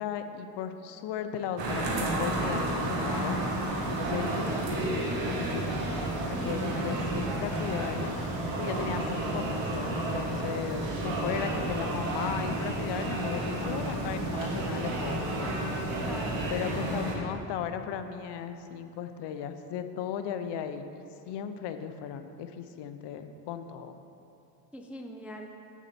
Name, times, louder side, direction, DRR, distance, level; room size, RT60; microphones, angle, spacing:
voice 1, 0.0-3.4 3.8-5.8 6.3-8.1 8.6-15.6 16.5-24.0, left 8 dB, 60° left, 9 dB, 0.7 m, -36 dB
sound 1, 1.6-17.2, right 1 dB, 70° right, 1.7 m, -31 dB
voice 2, 5.7-6.0 6.3-6.8 16.0-16.4 24.7-25.5, equal, 5° right, 2 dB, 0.3 m, -42 dB
8.0 x 7.3 x 4.3 m, 2.7 s
cardioid pair, 110°, 47 cm